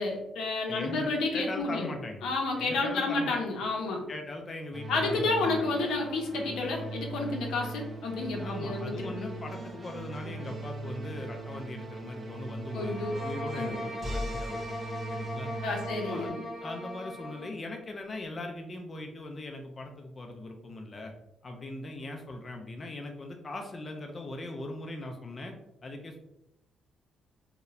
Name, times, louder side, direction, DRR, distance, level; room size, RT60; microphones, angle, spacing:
voice 1, 0.0-1.9 2.2-4.0 4.9-9.3 12.7-13.1 13.5-13.8 15.6-16.4, left 3 dB, 85° left, 1 dB, 0.5 m, -30 dB
voice 2, 0.7-2.2 2.6-3.3 4.1-5.7 8.2-14.7 15.1-15.5 16.1-21.1 21.4-25.5 25.8-26.2, left 2 dB, 30° left, 2 dB, 0.3 m, -40 dB
sound 1, 4.7-16.3, right 2 dB, 40° right, 0.4 m, -39 dB
sound 2, 12.7-17.5, left 1 dB, ahead, 1.2 m, -39 dB
2.8 x 2.0 x 2.3 m, 0.87 s
cardioid pair, 90°, 0 cm